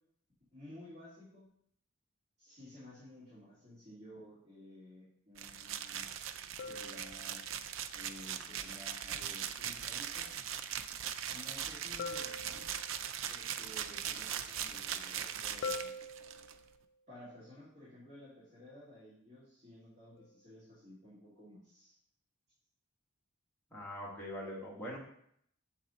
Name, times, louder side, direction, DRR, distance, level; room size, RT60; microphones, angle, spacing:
voice 1, 0.5-1.5 2.4-6.1 6.6-7.5 7.9-10.3 11.3-12.7 13.3-15.9 17.1-22.0, left 1 dB, 35° right, -11 dB, 2.6 m, -54 dB
sound 1, 5.4-16.5, right 9 dB, 80° right, 0.4 m, -40 dB
sound 2, 6.6-7.7 12.0-13.2 15.6-16.9 20.2-20.4, left 3 dB, 70° left, 0.4 m, -44 dB
voice 2, 23.7-25.0, equal, 10° left, -5 dB, 1.5 m, -42 dB
7.2 x 4.3 x 3.9 m, 0.70 s
head